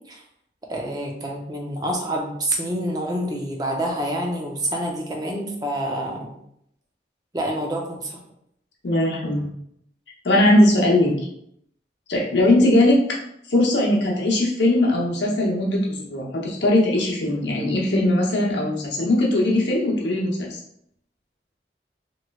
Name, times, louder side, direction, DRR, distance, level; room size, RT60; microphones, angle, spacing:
voice 1, 0.7-6.4 7.3-8.2, right 1 dB, 20° right, 0 dB, 0.5 m, -27 dB
voice 2, 8.8-9.5 10.2-11.1 12.1-13.0 13.5-20.6, left 1 dB, 80° left, -2 dB, 0.8 m, -20 dB
3.1 x 3.0 x 2.3 m, 0.73 s
head